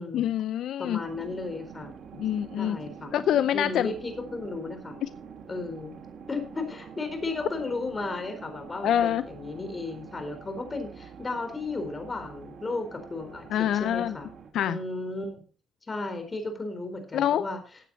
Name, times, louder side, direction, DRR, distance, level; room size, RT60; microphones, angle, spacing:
voice 1, 0.1-1.0 2.2-2.8 3.1-3.9 8.8-9.2 13.5-14.2 14.5-14.8 17.1-17.4, left 10 dB, 75° left, 13 dB, 0.6 m, -25 dB
voice 2, 0.8-1.9 2.6-3.1 3.5-5.0 5.5-5.9 6.3-14.3 14.6-15.4 15.9-17.6, left 3 dB, 30° left, 7 dB, 4.2 m, -34 dB
sound 1, 1.0-14.5, right 6 dB, 65° right, 2.8 m, -46 dB
14.5 x 8.6 x 4.2 m, 0.36 s
cardioid pair, 90°, 0 cm